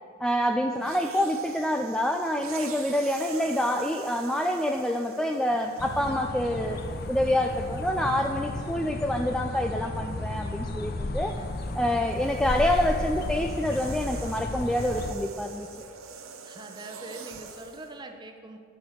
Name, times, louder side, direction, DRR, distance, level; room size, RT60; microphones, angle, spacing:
voice 1, 0.2-6.8 7.1-11.4 11.8-15.7, left 1 dB, 5° left, 3 dB, 0.3 m, -27 dB
sound 1, 0.7-6.3 7.1-7.3 11.3-17.9, right 5 dB, 90° right, 0.8 m, -45 dB
sound 2, 5.8-15.1, left 2 dB, 50° left, 0.7 m, -34 dB
voice 2, 16.4-18.6, right 2 dB, 20° right, 4 dB, 0.8 m, -44 dB
10.5 x 6.2 x 6.4 m, 2.4 s
head